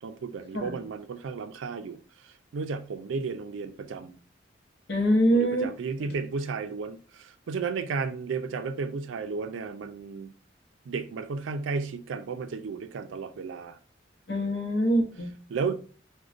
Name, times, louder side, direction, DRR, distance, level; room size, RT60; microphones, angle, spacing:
voice 1, 0.0-4.2 5.3-10.3 10.9-13.8 15.5-15.7, right 4 dB, 80° right, 0.4 m, -33 dB
voice 2, 4.9-5.7 14.3-15.3, equal, 55° left, 0.7 m, -24 dB
4.9 x 2.1 x 2.4 m
head